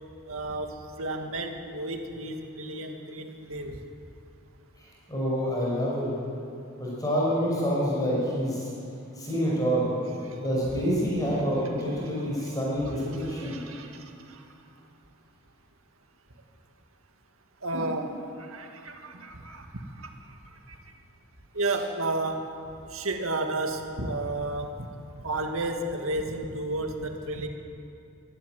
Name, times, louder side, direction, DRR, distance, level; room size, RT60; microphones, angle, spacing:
voice 1, 0.3-3.8 11.9-12.5 12.8-14.0 14.3-14.4 17.6-19.7 20.0-20.1 20.7-20.8 21.5-22.5 22.9-24.9 25.2-27.5, right 2 dB, 85° right, 4 dB, 2.0 m, -32 dB
voice 2, 4.8-6.1 6.8-8.7 9.1-9.9 10.4-13.6, equal, 20° left, -5 dB, 5.6 m, -27 dB
24.0 x 11.5 x 9.3 m, 2.7 s
head